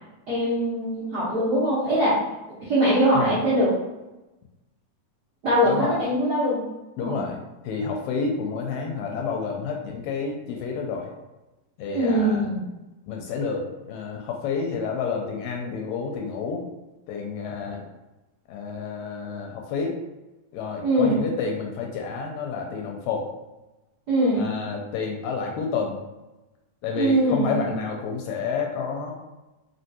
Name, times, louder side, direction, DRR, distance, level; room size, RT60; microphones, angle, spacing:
voice 1, 0.3-2.2 2.6-3.7 5.4-6.7 7.0-7.2 11.9-12.6 20.8-21.2 24.1-24.6 27.0-27.7, equal, 65° right, -11 dB, 0.9 m, -22 dB
voice 2, 5.6-6.0 7.0-11.1 11.8-12.5 13.1-16.6 17.1-17.8 18.5-20.0 20.5-23.3 24.4-26.0 26.8-29.1, left 5 dB, 80° left, 1 dB, 1.8 m, -29 dB
4.3 x 3.2 x 2.8 m, 1.0 s
omnidirectional pair, 3.5 m